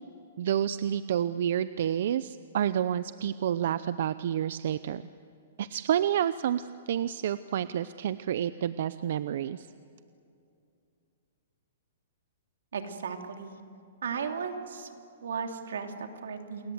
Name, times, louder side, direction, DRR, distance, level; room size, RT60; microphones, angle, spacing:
voice 1, 0.4-5.0 5.6-9.7, right 10 dB, 55° right, 14 dB, 0.6 m, -29 dB
voice 2, 12.7-13.6 14.0-14.9 15.2-16.7, right 6 dB, 85° right, 4 dB, 3.0 m, -35 dB
28.5 x 22.0 x 8.0 m, 2.6 s
hypercardioid pair, 165°, 0 cm